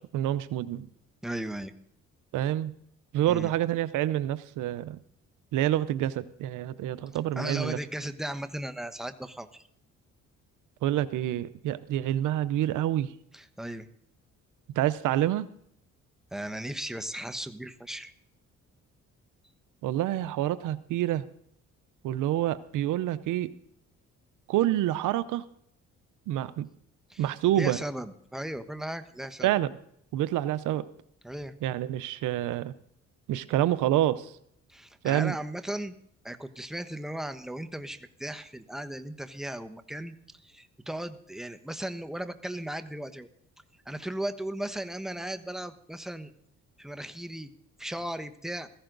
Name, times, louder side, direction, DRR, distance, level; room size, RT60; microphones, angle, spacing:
voice 1, 0.1-0.9 2.3-2.7 3.1-5.0 5.5-7.8 10.8-13.1 14.8-15.5 19.8-21.2 22.0-23.5 24.5-25.4 26.3-26.7 27.2-27.8 29.4-29.7 30.1-30.8 31.6-32.7 33.3-34.3 35.0-35.3, right 13 dB, 90° right, 15 dB, 0.7 m, -27 dB
voice 2, 1.2-1.7 3.3-3.5 7.4-9.6 13.3-13.9 16.3-18.1 27.1-27.3 27.5-29.6 31.2-31.5 34.7-35.9 36.2-40.1 40.4-43.3 43.9-46.3 46.8-47.5 47.8-48.7, right 1 dB, ahead, 9 dB, 1.2 m, -36 dB
16.0 x 15.0 x 3.9 m, 0.69 s
cardioid pair, 90°, 30 cm